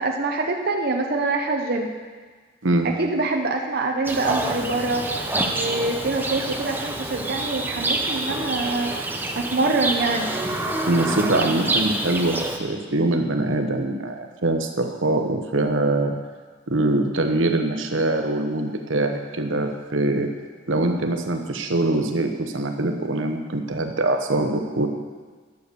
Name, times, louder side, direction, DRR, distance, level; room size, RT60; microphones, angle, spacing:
voice 1, 0.0-1.9 2.8-5.1 5.5-8.9 9.3-10.4, right 3 dB, 55° right, 2 dB, 0.8 m, -25 dB
voice 2, 2.6-3.0 10.9-16.2 16.7-20.3 20.7-24.9, right 2 dB, 85° right, 5 dB, 1.0 m, -23 dB
Livestock farm animals working animals, 4.0-12.6, right 2 dB, 10° right, 0.8 m, -27 dB
10.5 x 6.8 x 6.8 m, 1.5 s
head